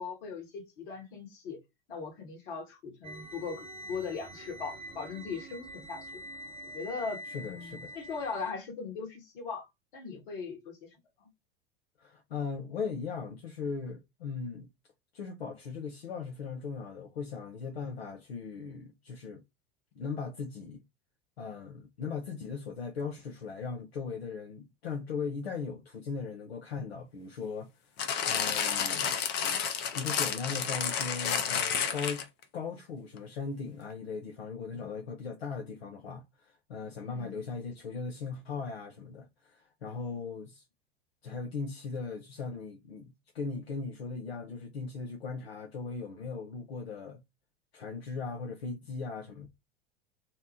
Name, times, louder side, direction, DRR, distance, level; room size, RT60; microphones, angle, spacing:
voice 1, 0.0-1.6 1.9-6.2 6.7-11.3 37.0-37.4, left 5 dB, 55° left, 1.1 m, -39 dB
sound 1, 3.0-8.5, equal, 20° right, 0.4 m, -45 dB
voice 2, 7.3-7.9 12.0-14.7 15.1-19.4 20.0-20.8 21.4-27.7 28.3-29.2 29.9-32.2 32.5-40.6 41.2-47.2 47.7-49.5, left 5 dB, 75° left, 0.6 m, -38 dB
sound 2, 28.0-32.4 33.2-33.3, left 7 dB, 35° left, 0.6 m, -31 dB
2.8 x 2.0 x 2.8 m
figure-of-eight pair, 80°, 31 cm